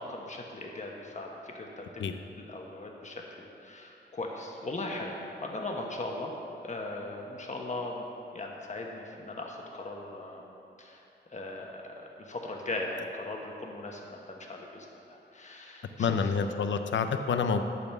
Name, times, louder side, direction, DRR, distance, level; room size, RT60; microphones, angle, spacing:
voice 1, 0.0-2.1 2.4-5.1 5.4-6.3 6.6-8.1 8.3-10.5 10.8-11.0 11.3-16.4, left 2 dB, 40° left, 0 dB, 1.2 m, -39 dB
voice 2, 16.0-17.6, left 5 dB, 90° left, 7 dB, 0.6 m, -28 dB
12.0 x 4.1 x 7.1 m, 2.8 s
wide cardioid pair, 125°, 19 cm